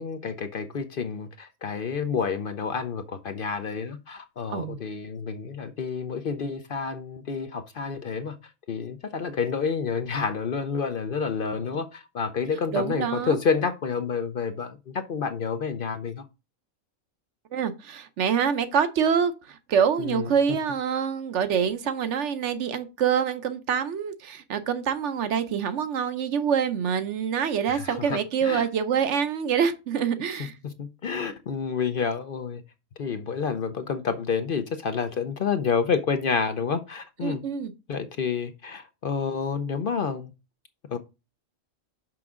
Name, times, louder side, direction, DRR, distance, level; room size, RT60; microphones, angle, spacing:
voice 1, 0.0-8.4 8.7-16.2 20.0-20.3 27.7-28.7 30.6-32.6 33.0-37.4 37.9-40.3 40.9-41.0, left 5 dB, 55° left, 0.6 m, -29 dB
voice 2, 12.7-13.4 17.5-30.6 37.2-37.7, right 7 dB, 60° right, 0.9 m, -26 dB
6.0 x 5.9 x 3.6 m
omnidirectional pair, 1.5 m